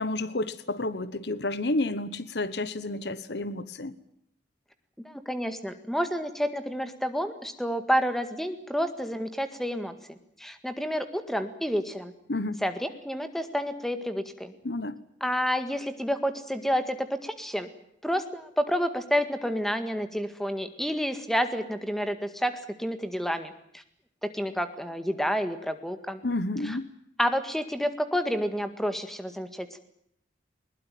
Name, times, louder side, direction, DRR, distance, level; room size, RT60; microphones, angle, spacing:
voice 1, 0.0-3.9 12.3-12.6 14.6-15.0 26.2-26.9, left 2 dB, 65° left, 1.1 m, -30 dB
voice 2, 5.0-12.1 12.6-14.5 15.2-17.7 18.0-23.8 24.3-26.2 26.6-26.8 27.2-29.8, equal, ahead, 1.8 m, -29 dB
21.0 x 20.5 x 9.1 m
head